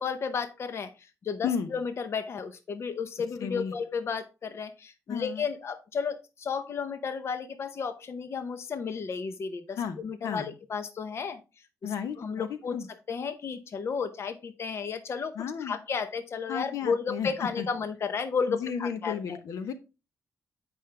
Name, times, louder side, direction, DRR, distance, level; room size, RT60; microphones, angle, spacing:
voice 1, 0.0-12.8 13.1-19.4, left 5 dB, 50° left, 10 dB, 0.8 m, -33 dB
voice 2, 3.4-3.7 5.1-5.4 9.8-10.0 10.2-10.5 11.8-12.9 15.3-15.8 16.5-17.3 17.6-17.7 18.5-19.7, left 7 dB, 80° left, 10 dB, 1.0 m, -33 dB
8.5 x 5.4 x 3.3 m, 0.28 s
cardioid pair, 85°, 6 cm